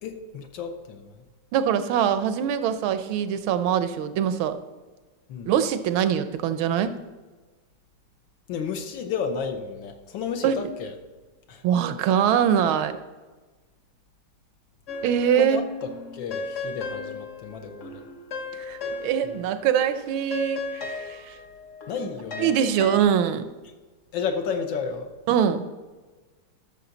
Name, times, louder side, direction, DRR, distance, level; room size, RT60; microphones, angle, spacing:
voice 1, 0.0-1.2 5.3-5.5 8.5-10.9 11.5-11.6 15.3-18.0 19.2-19.4 21.9-22.6 24.1-25.1, left 6 dB, 75° left, 6 dB, 1.5 m, -32 dB
voice 2, 1.5-4.6 5.5-7.0 10.4-10.7 11.6-13.0 15.0-15.6 18.6-21.4 22.4-23.4 25.3-25.7, right 8 dB, 85° right, 11 dB, 1.5 m, -23 dB
sound 1, 14.9-15.5 15.8-19.5 19.8-23.0, left 3 dB, 50° left, 0.9 m, -36 dB
12.5 x 6.5 x 3.9 m, 1.3 s
omnidirectional pair, 2.2 m